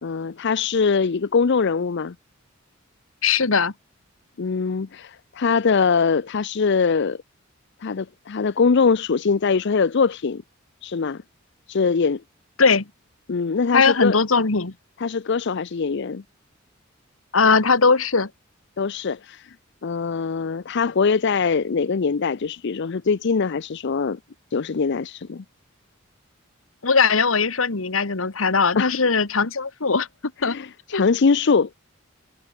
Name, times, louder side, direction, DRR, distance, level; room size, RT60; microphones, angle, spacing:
voice 1, 0.0-2.1 4.4-7.2 7.8-10.4 10.8-11.2 11.7-12.2 13.3-14.2 15.0-16.2 18.8-19.6 19.8-24.2 24.5-25.4 28.7-29.0 30.4-31.7, left 5 dB, 60° left, 0.6 m, -22 dB
voice 2, 3.2-3.7 12.6-12.9 13.7-14.7 17.3-18.3 26.8-30.1 30.4-30.6 30.9-31.1, left 4 dB, 85° left, 1.6 m, -19 dB
head